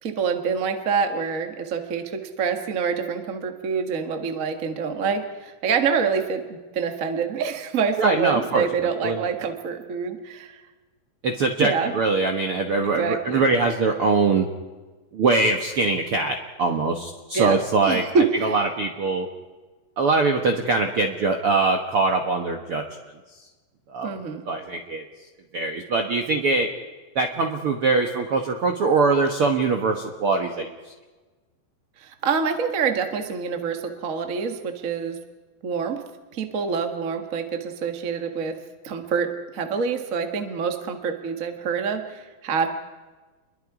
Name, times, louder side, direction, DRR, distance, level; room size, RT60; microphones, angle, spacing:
voice 1, 0.0-6.4 6.7-10.6 11.6-12.0 12.8-13.4 17.3-17.6 17.8-18.5 24.0-24.4 32.0-35.2 35.6-36.0 36.3-38.6 38.8-42.7, right 5 dB, 45° right, 5 dB, 1.0 m, -26 dB
voice 2, 8.0-8.7 9.0-9.2 11.2-14.5 15.1-18.0 18.4-19.3 20.0-22.8 23.9-24.2 24.5-25.0 25.5-26.7 27.1-30.7, right 3 dB, 65° right, 3 dB, 1.4 m, -22 dB
29.5 x 22.5 x 4.9 m, 1.3 s
omnidirectional pair, 4.4 m